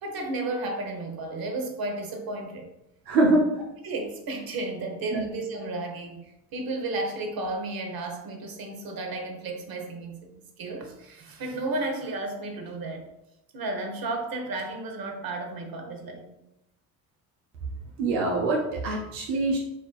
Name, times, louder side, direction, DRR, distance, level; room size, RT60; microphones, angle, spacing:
voice 1, 0.0-2.7 3.3-3.4 3.8-13.1 13.5-16.3, right 2 dB, 45° right, 4 dB, 1.1 m, -33 dB
voice 2, 3.1-3.5 5.1-5.3 18.0-19.6, right 2 dB, 75° right, -1 dB, 0.9 m, -24 dB
7.2 x 2.6 x 2.4 m, 0.87 s
hypercardioid pair, 55°, 48 cm